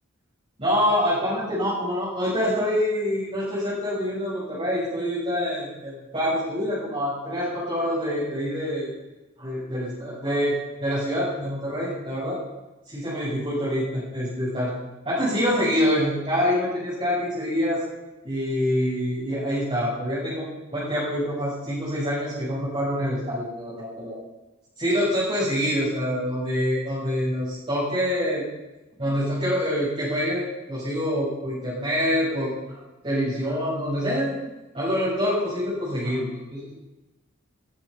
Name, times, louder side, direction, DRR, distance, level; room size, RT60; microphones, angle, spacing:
voice 1, 0.6-8.9 9.4-12.4 12.9-14.7 15.0-17.8 18.2-24.2 24.8-28.4 29.0-32.8 33.0-34.4 34.7-36.7, equal, 25° right, -10 dB, 7.2 m, -26 dB
21.0 x 10.5 x 5.7 m, 1.1 s
head